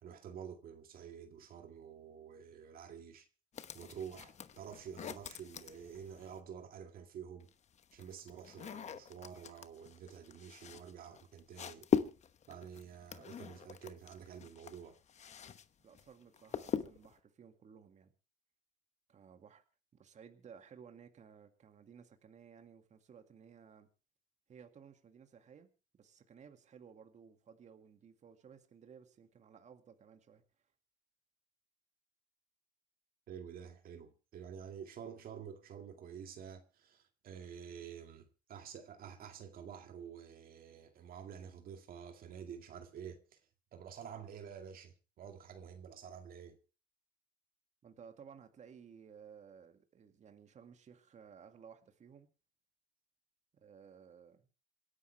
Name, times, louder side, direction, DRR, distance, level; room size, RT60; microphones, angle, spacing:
voice 1, 0.0-3.3 3.7-7.5 7.9-11.9 12.5-15.0 33.3-43.4 43.7-46.6, right 8 dB, 60° right, 2.1 m, -49 dB
sound 1, 3.5-6.4 7.4-15.7 15.9-17.2, left 7 dB, 40° left, 1.0 m, -41 dB
voice 2, 15.8-18.1 19.1-19.6 19.9-23.9 24.5-25.7 26.0-30.4 47.8-52.3 53.6-54.5, right 7 dB, 45° right, 2.1 m, -57 dB
27.5 x 11.0 x 3.3 m
cardioid pair, 110°, 17 cm